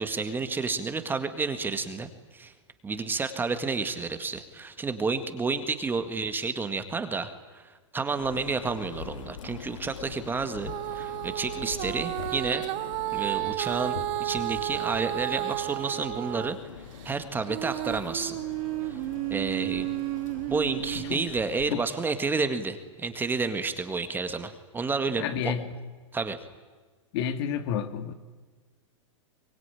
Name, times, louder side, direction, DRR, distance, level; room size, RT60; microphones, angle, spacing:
voice 1, 0.0-2.5 2.8-12.6 13.1-16.6 17.0-18.4 18.8-19.0 19.3-19.9 20.5-25.5 26.1-26.4, right 4 dB, 10° right, 9 dB, 1.8 m, -30 dB
sound 1, 8.2-21.7, left 7 dB, 85° left, 2.0 m, -43 dB
Female singing, 10.7-16.6 17.0-21.3 21.9-22.0, right 18 dB, 40° right, 1.0 m, -32 dB
voice 2, 25.2-25.8 27.1-28.1, left 8 dB, 55° left, 9 dB, 2.3 m, -30 dB
24.0 x 21.5 x 9.9 m, 1.4 s
hypercardioid pair, 130°, 16 cm